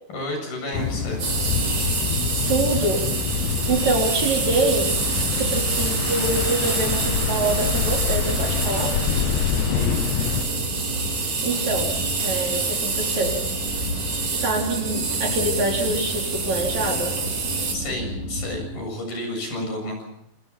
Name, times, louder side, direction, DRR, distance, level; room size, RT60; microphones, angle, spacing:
voice 1, 0.1-1.2 9.6-10.0 17.7-20.0, left 1 dB, 60° left, 3 dB, 9.3 m, -31 dB
sound 1, 0.7-10.5, left 8 dB, 90° left, 3.2 m, -26 dB
sound 2, 0.8-18.7, left 1 dB, 20° right, 8.5 m, -33 dB
copy machine, 1.2-17.7, right 4 dB, 80° right, 6.7 m, -27 dB
voice 2, 2.5-3.1 3.7-4.9 5.3-9.0 11.4-11.9 12.2-13.4 13.8-13.9 14.4-17.2, right 2 dB, 45° right, 0 dB, 5.3 m, -25 dB
28.5 x 28.0 x 4.3 m, 0.74 s
omnidirectional pair, 4.5 m